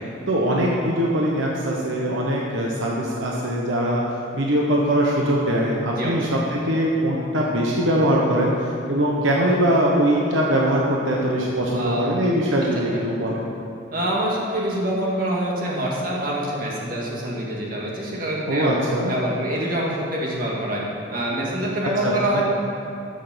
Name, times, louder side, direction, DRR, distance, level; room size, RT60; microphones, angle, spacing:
voice 1, 0.3-4.0 4.3-13.4 18.5-19.1 21.8-22.4, equal, 75° right, -3 dB, 1.2 m, -22 dB
voice 2, 6.0-6.3 11.7-12.1 13.9-18.8 19.1-20.8 21.1-22.4, right 1 dB, 45° right, -4 dB, 2.1 m, -25 dB
14.0 x 6.7 x 5.2 m, 2.7 s
head